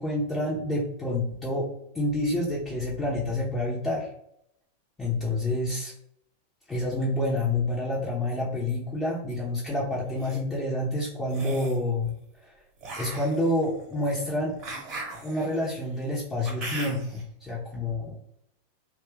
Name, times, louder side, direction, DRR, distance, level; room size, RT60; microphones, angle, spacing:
voice 1, 0.0-1.6 1.9-4.1 5.0-5.9 6.7-12.1 12.4-12.5 13.0-14.5 15.2-18.2, left 1 dB, 15° left, -7 dB, 0.8 m, -28 dB
sound 1, 9.9-10.4 11.3-11.8 12.8-17.2, right 2 dB, 35° right, 1.2 m, -39 dB
3.0 x 2.3 x 3.1 m, 0.72 s
figure-of-eight pair, 90°, 0 cm